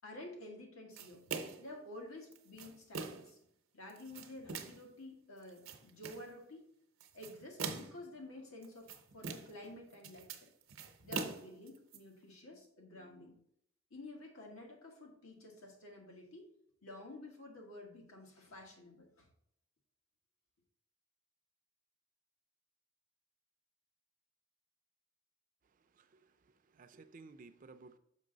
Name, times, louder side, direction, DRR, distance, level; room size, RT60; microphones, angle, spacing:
voice 1, 0.0-1.2 1.6-3.4 3.7-6.7 7.1-10.5 11.0-13.4 13.9-16.5 16.8-19.3, left 1 dB, 90° left, 0 dB, 1.6 m, -51 dB
sound 1, 1.0-1.7 2.3-3.3 3.9-4.9 5.4-6.3 7.0-8.1 8.6-9.7 9.9-12.0, right 5 dB, 80° right, 0.8 m, -43 dB
voice 2, 25.9-28.0, right 3 dB, 40° right, 10 dB, 0.4 m, -57 dB
6.4 x 5.3 x 3.9 m, 0.71 s
head